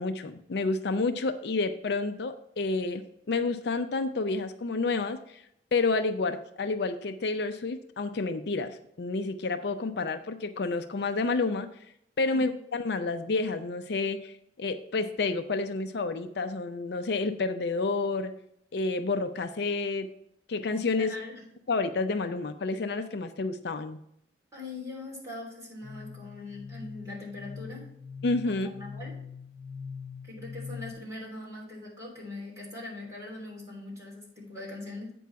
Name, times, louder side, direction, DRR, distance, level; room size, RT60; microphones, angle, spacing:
voice 1, 0.0-3.0 3.3-5.4 5.7-11.7 12.2-18.3 18.7-20.1 20.5-21.1 21.7-24.0 28.2-28.7, left 3 dB, 65° left, 9 dB, 0.5 m, -29 dB
voice 2, 20.9-21.4 24.5-27.9 28.4-29.2 30.2-35.1, left 2 dB, 20° right, -5 dB, 3.3 m, -41 dB
sound 1, 25.8-30.9, left 5 dB, 40° left, 3.0 m, -42 dB
8.4 x 5.4 x 4.6 m, 0.74 s
head